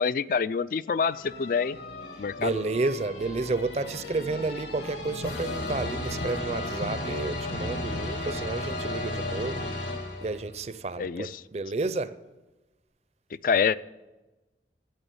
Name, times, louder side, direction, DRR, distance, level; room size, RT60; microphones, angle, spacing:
voice 1, 0.0-1.8 2.2-2.6 11.0-11.4 13.4-13.8, left 6 dB, 50° left, 17 dB, 0.3 m, -26 dB
sound 1, 1.1-10.6, left 2 dB, 75° left, 2.1 m, -34 dB
voice 2, 2.4-9.7 10.2-12.1, right 3 dB, 35° right, 14 dB, 0.5 m, -31 dB
11.0 x 8.7 x 6.9 m, 1.1 s
head